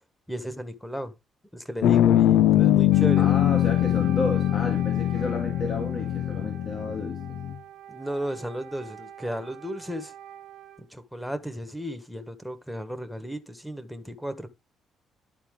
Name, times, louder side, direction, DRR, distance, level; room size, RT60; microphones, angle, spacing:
voice 1, 0.3-1.1 1.5-3.3 7.9-10.1 10.9-14.5, equal, ahead, 1.3 m, -34 dB
C drop to D, 1.8-7.6, left 12 dB, 85° left, 0.3 m, -22 dB
Wind instrument woodwind instrument, 2.9-10.9, right 11 dB, 80° right, 1.0 m, -45 dB
voice 2, 3.2-7.4, left 3 dB, 50° left, 1.8 m, -32 dB
11.5 x 4.2 x 3.7 m
cardioid pair, 90°, 0 cm